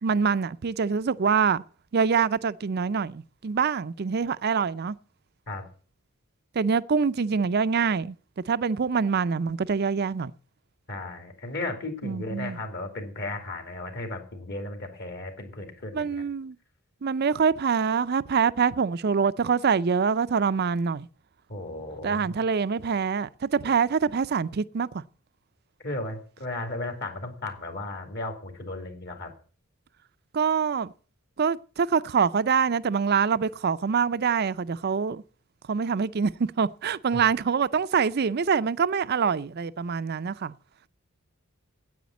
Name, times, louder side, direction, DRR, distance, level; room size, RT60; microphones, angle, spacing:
voice 1, 0.0-1.6 1.9-5.0 6.6-8.1 8.5-10.3 12.0-12.6 15.9-16.6 17.0-21.1 22.0-25.0 30.3-30.9 31.4-35.2 35.7-40.5, right 6 dB, 50° right, 0.5 m, -25 dB
voice 2, 10.9-16.2 21.5-22.4 25.8-29.3 37.1-37.2, left 2 dB, 55° left, 2.7 m, -35 dB
9.4 x 8.6 x 8.2 m
head